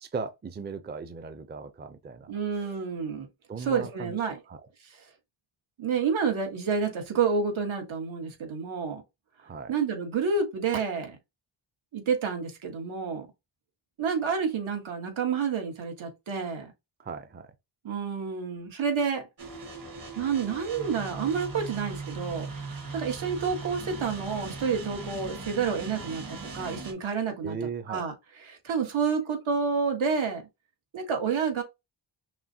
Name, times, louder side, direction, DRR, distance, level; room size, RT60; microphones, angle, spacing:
voice 1, 0.0-2.3 2.6-2.7 3.5-4.2 4.5-4.6 9.4-9.7 17.0-17.5 27.4-28.0, right 5 dB, 25° right, 0.5 m, -37 dB
voice 2, 2.3-3.3 3.6-4.4 4.9-5.1 5.8-9.0 9.7-11.2 11.9-13.3 14.0-16.7 17.8-19.3 20.1-22.5 22.9-26.2 26.5-27.6 27.9-28.1 28.5-30.4 30.9-31.6, right 5 dB, 80° right, 1.5 m, -29 dB
sound 1, 19.4-26.9, right 3 dB, 45° right, 1.5 m, -39 dB
5.9 x 2.2 x 2.7 m
wide cardioid pair, 100°, 47 cm